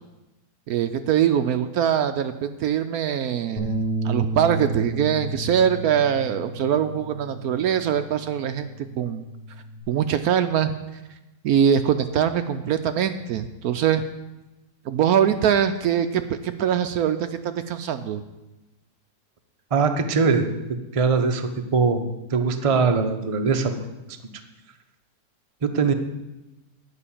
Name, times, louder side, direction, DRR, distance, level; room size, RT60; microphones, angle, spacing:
voice 1, 0.7-9.2 9.9-10.7 11.4-14.0 14.9-18.2, right 9 dB, 70° right, 9 dB, 0.9 m, -23 dB
Bass guitar, 3.6-8.0 8.4-9.8, right 1 dB, 5° right, 3.9 m, -32 dB
voice 2, 19.7-20.5 20.9-22.0 22.3-23.7 24.1-24.2 25.6-25.9, right 4 dB, 50° right, 5 dB, 0.4 m, -21 dB
9.8 x 5.7 x 8.5 m, 1.0 s
omnidirectional pair, 1.9 m